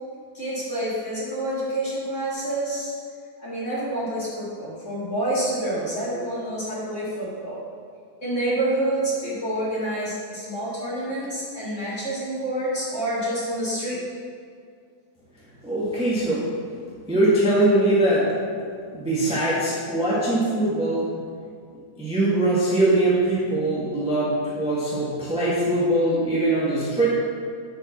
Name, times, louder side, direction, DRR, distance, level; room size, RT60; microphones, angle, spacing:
voice 1, 0.3-2.9 3.4-7.6 8.2-14.0 19.3-19.5, right 1 dB, 25° left, -8 dB, 2.3 m, -28 dB
voice 2, 15.6-16.5 17.1-18.3 18.9-21.1 22.0-27.1, right 1 dB, 5° right, -8 dB, 1.3 m, -22 dB
9.3 x 5.3 x 6.0 m, 2.3 s
omnidirectional pair, 3.5 m